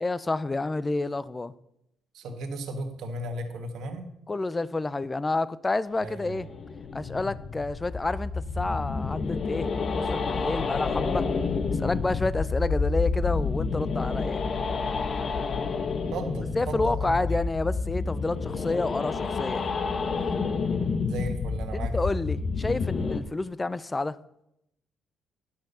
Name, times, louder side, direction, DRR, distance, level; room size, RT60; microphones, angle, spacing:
voice 1, 0.0-1.5 4.3-6.5 6.9-11.3 11.8-14.4 16.6-19.7 21.7-24.2, left 2 dB, 20° left, 0.5 m, -29 dB
voice 2, 2.1-4.1 6.0-6.4 16.1-17.4 21.1-22.1, right 2 dB, 75° right, 1.6 m, -35 dB
sound 1, 6.2-23.2, left 4 dB, 50° left, 0.9 m, -29 dB
10.5 x 5.7 x 6.8 m
cardioid pair, 90°, 0 cm